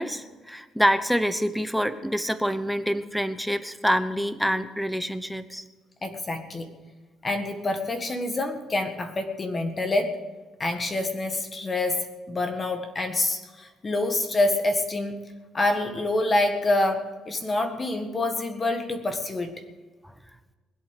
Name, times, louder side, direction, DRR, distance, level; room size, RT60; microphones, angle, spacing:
voice 1, 0.0-5.6, equal, ahead, 12 dB, 0.9 m, -26 dB
voice 2, 6.0-6.7 7.2-10.2 10.6-15.3 15.5-19.5, left 2 dB, 25° left, 6 dB, 1.7 m, -27 dB
21.0 x 8.5 x 6.7 m, 1.3 s
cardioid pair, 130°, 0 cm